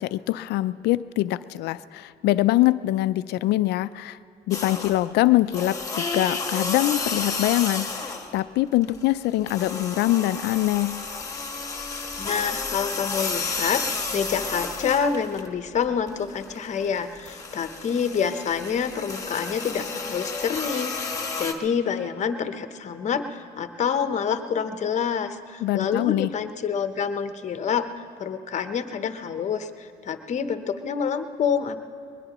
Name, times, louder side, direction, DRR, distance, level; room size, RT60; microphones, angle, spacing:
voice 1, 0.0-4.2 4.5-11.0 25.6-26.3, left 16 dB, 80° left, 15 dB, 0.4 m, -23 dB
sound 1, 4.5-5.1 5.5-8.4 8.7-15.5 15.8-21.5, left 4 dB, 20° left, 1.5 m, -31 dB
voice 2, 12.2-27.9 28.2-31.8, left 7 dB, 45° left, 9 dB, 0.9 m, -27 dB
21.5 x 20.5 x 3.0 m, 2.4 s
cardioid pair, 110°, 17 cm